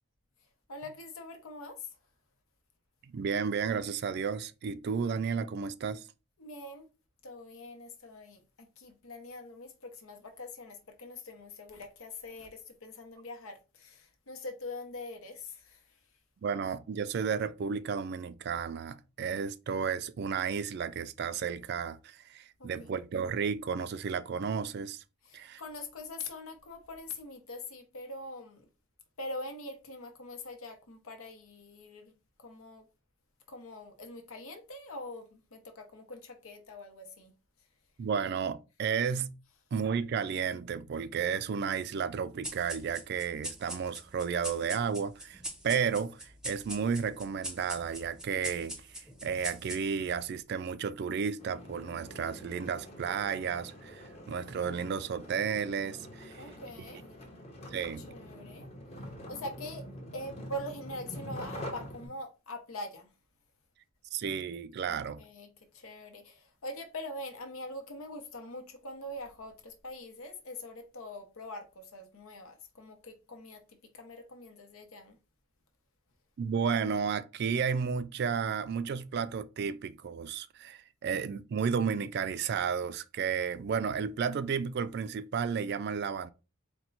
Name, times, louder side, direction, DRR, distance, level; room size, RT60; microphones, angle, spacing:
voice 1, 0.7-1.9 6.4-6.9 7.2-16.0 22.6-23.0 25.2-28.7 29.2-32.1 32.4-32.8 33.5-37.3 56.4-57.0 58.1-58.7 59.3-59.8 60.1-63.1 64.9-75.2, left 1 dB, 80° left, 0.9 m, -43 dB
voice 2, 3.0-6.1 16.4-25.0 25.3-25.6 38.0-39.3 39.7-56.4 57.7-58.1 64.1-65.2 76.4-86.3, right 6 dB, 50° right, 0.3 m, -33 dB
sound 1, 42.4-50.2, right 1 dB, 5° right, 0.7 m, -43 dB
sound 2, 51.4-62.1, equal, 30° left, 0.9 m, -45 dB
4.4 x 2.1 x 4.0 m
head